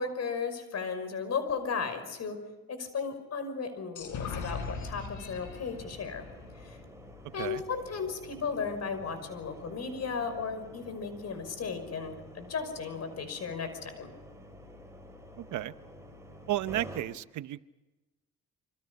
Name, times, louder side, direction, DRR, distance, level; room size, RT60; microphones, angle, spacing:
voice 1, 0.0-2.4 2.7-6.3 6.6-6.8 7.3-14.1, left 5 dB, 60° left, 8 dB, 5.8 m, -35 dB
sound 1, 3.9-7.6, left 5 dB, 85° left, 6.0 m, -41 dB
sound 2, 5.3-17.0, equal, 10° right, 4.4 m, -50 dB
voice 2, 15.4-15.7 16.5-17.6, right 14 dB, 75° right, 14 dB, 1.0 m, -33 dB
27.5 x 25.5 x 5.5 m, 1.1 s
cardioid pair, 90°, 30 cm